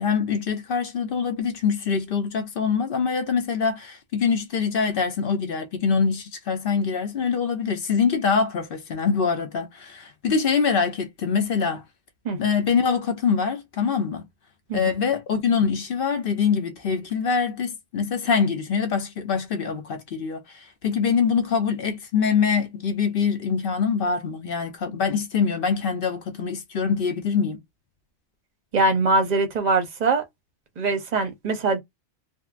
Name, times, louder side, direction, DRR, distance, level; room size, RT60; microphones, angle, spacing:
voice 1, 0.0-11.8 12.4-14.3 14.7-27.6, left 6 dB, 55° left, 0.7 m, -24 dB
voice 2, 28.7-30.2 30.8-31.8, right 3 dB, 40° right, 0.8 m, -22 dB
3.5 x 2.1 x 2.4 m
omnidirectional pair, 1.3 m